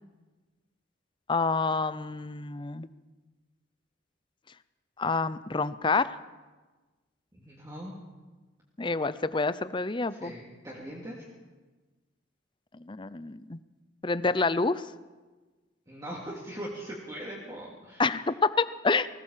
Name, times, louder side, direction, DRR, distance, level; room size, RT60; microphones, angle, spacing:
voice 1, 1.3-2.9 5.0-6.2 8.8-10.3 12.8-13.6 14.0-14.8 18.0-19.1, left 4 dB, 25° left, 15 dB, 0.6 m, -28 dB
voice 2, 7.3-7.9 10.1-11.3 15.9-18.1, right 1 dB, 20° right, -5 dB, 3.2 m, -41 dB
20.0 x 18.0 x 7.5 m, 1.3 s
head